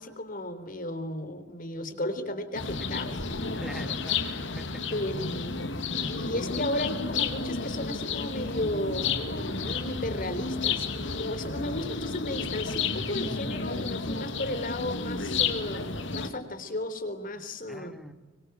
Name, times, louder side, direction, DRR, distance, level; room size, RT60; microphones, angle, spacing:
voice 1, 0.0-3.0 3.7-3.8 4.9-5.7 5.9-18.0, left 1 dB, 45° left, 10 dB, 3.6 m, -34 dB
sound 1, 2.5-16.3, left 4 dB, 70° left, 2.3 m, -31 dB
voice 2, 3.6-4.3 4.6-5.0 17.7-18.1, equal, ahead, 8 dB, 2.4 m, -44 dB
24.5 x 24.5 x 9.3 m, 1.2 s
head